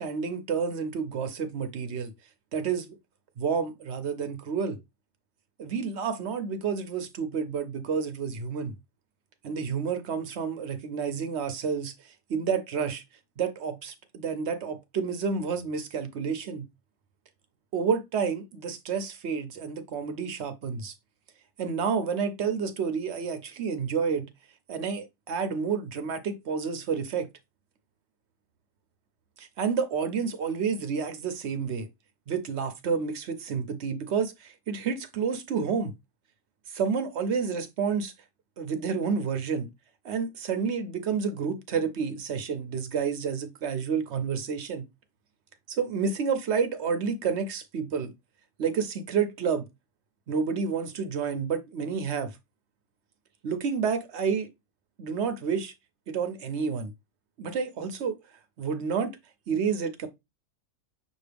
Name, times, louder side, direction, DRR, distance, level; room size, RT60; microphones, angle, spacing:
voice 1, 0.0-2.1 2.5-2.9 3.4-4.8 5.6-8.7 9.4-13.0 13.4-16.7 17.7-20.9 21.6-24.3 24.7-27.3 29.4-31.9 32.3-35.9 36.7-38.1 38.6-39.7 40.0-44.8 45.7-48.1 48.6-49.7 50.3-52.4 53.4-54.5 55.0-55.7 56.1-56.9 57.4-58.2 58.6-59.2 59.5-60.1, right 6 dB, 60° right, 0.7 m, -29 dB
6.3 x 2.4 x 3.3 m
omnidirectional pair, 1.7 m